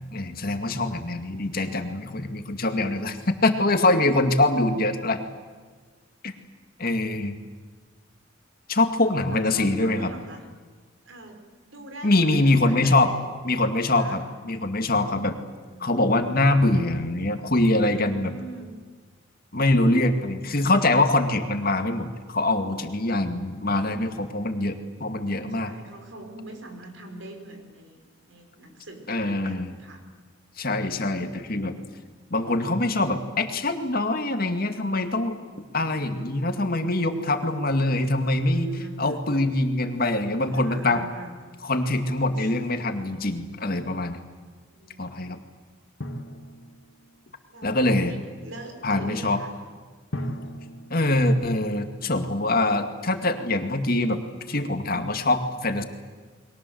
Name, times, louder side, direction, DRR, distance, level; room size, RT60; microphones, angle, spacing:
voice 1, 0.1-5.2 6.2-6.3 6.8-7.4 8.7-10.1 12.0-13.1 13.4-15.4 15.8-18.3 19.5-25.7 29.1-29.7 30.6-31.8 32.3-38.7 39.0-41.0 41.6-44.2 45.0-45.4 47.6-48.1 48.8-49.4 50.9-54.2 54.5-55.8, left 2 dB, 45° left, 6 dB, 2.2 m, -24 dB
voice 2, 9.3-10.6 11.0-13.2 13.7-14.3 15.6-16.4 17.6-18.7 25.5-30.0 38.5-39.2 40.5-41.6 42.3-42.5 44.7-45.0 47.5-48.2 48.4-49.6 50.2-50.5, right 1 dB, 70° right, 5 dB, 4.9 m, -43 dB
Drum, 46.0-47.5 50.1-52.3, equal, 65° left, 2.4 m, -38 dB
30.0 x 22.5 x 7.9 m, 1.5 s
head